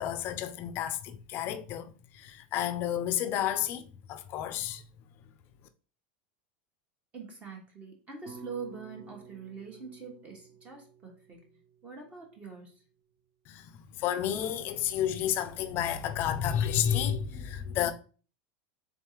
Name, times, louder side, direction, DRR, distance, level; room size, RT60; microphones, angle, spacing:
voice 1, 0.0-4.8 13.5-17.9, left 10 dB, 40° left, 0.4 m, -31 dB
voice 2, 7.1-12.8, right 5 dB, 25° right, 1.0 m, -44 dB
sound 1, 8.3-12.5, right 6 dB, 45° right, 0.5 m, -52 dB
3.7 x 3.6 x 2.9 m
supercardioid pair, 150°, 6 cm